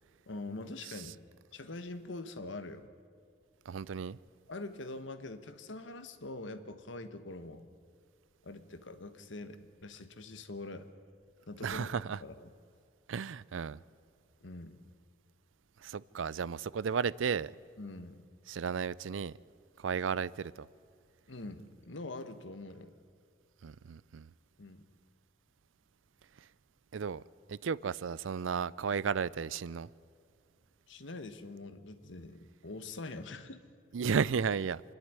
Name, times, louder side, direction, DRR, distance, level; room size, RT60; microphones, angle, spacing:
voice 1, 0.3-1.2 1.5-2.9 4.5-7.7 8.4-10.9 11.5-11.9 12.2-12.5 14.4-14.8 17.8-18.2 21.3-22.9 24.6-24.8 30.9-33.6, left 2 dB, 75° left, 1.3 m, -44 dB
voice 2, 3.7-4.2 11.6-12.2 13.1-13.8 15.8-17.5 18.5-19.3 19.8-20.7 23.6-24.3 26.9-27.2 27.5-29.9 33.9-34.8, right 6 dB, 85° right, 0.4 m, -33 dB
26.0 x 11.0 x 9.7 m
head